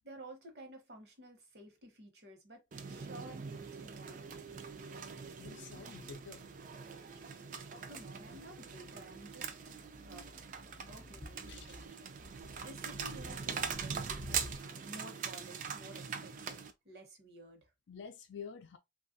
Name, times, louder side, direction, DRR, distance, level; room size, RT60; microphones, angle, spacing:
voice 1, 0.0-4.6 7.7-9.5 10.1-10.3 10.9-12.1 12.6-17.7, right 1 dB, 60° right, 1.0 m, -53 dB
sound 1, 2.7-16.7, right 6 dB, 45° right, 0.4 m, -43 dB
sound 2, 3.1-11.9, left 1 dB, 20° left, 0.5 m, -60 dB
voice 2, 5.4-6.5 11.5-11.8 17.9-18.8, left 6 dB, 80° left, 0.4 m, -48 dB
sound 3, 11.8-14.7, left 1 dB, 85° right, 0.8 m, -50 dB
3.1 x 2.3 x 2.6 m
head